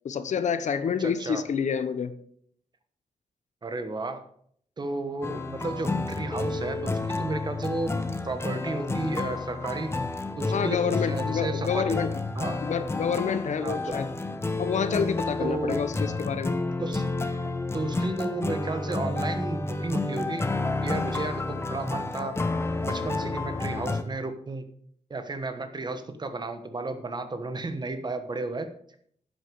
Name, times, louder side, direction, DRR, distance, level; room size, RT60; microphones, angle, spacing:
voice 1, 0.0-2.2 10.5-12.2 12.6-14.1 14.6-16.6, left 6 dB, 70° left, 12 dB, 0.9 m, -28 dB
voice 2, 1.0-1.4 3.6-4.2 4.8-8.0 8.2-9.9 10.4-12.0 12.3-12.6 13.6-14.0 15.4-15.9 16.8-17.0 17.7-20.4 20.8-22.4 22.8-24.7 25.1-28.7, right 2 dB, 35° right, 8 dB, 1.2 m, -33 dB
sound 1, 5.2-24.0, left 3 dB, 20° left, 0.9 m, -30 dB
10.5 x 8.2 x 4.7 m, 0.63 s
wide cardioid pair, 120°, 13 cm